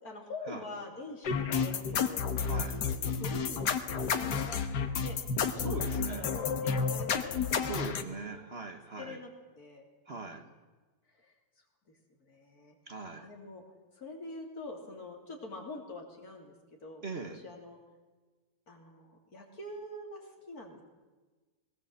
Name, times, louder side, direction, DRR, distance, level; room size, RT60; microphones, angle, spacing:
voice 1, 0.0-4.7 5.0-5.2 5.5-8.5 9.0-9.3 9.6-10.4 11.1-11.4 11.9-12.8 13.2-13.6 13.9-16.5 16.8-17.8 18.7-20.8, left 2 dB, 60° left, 1 dB, 3.8 m, -46 dB
sound 1, 1.2-8.0, left 6 dB, 80° left, 1.8 m, -31 dB
voice 2, 2.4-2.8 5.6-6.2 7.6-9.2 10.1-10.4 12.9-13.3 17.0-17.4, right 3 dB, 40° right, 7 dB, 1.4 m, -40 dB
20.0 x 18.0 x 7.9 m, 1.3 s
omnidirectional pair, 1.8 m